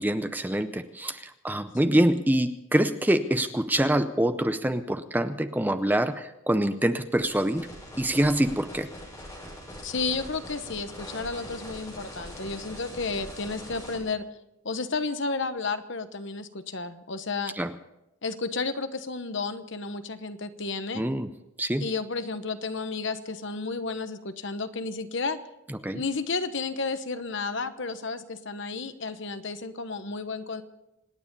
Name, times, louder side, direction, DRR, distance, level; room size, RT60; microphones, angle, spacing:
voice 1, 0.0-7.7 8.0-8.9 17.6-17.7 21.0-21.3 21.6-21.9 25.8-26.0, right 1 dB, 10° right, 9 dB, 0.5 m, -25 dB
sound 1, 7.2-14.0, equal, 15° left, 7.0 m, -42 dB
voice 2, 9.8-14.2 14.6-17.5 18.2-21.0 21.8-25.4 25.9-30.6, left 4 dB, 55° left, 10 dB, 1.0 m, -32 dB
26.0 x 9.7 x 5.4 m, 0.91 s
head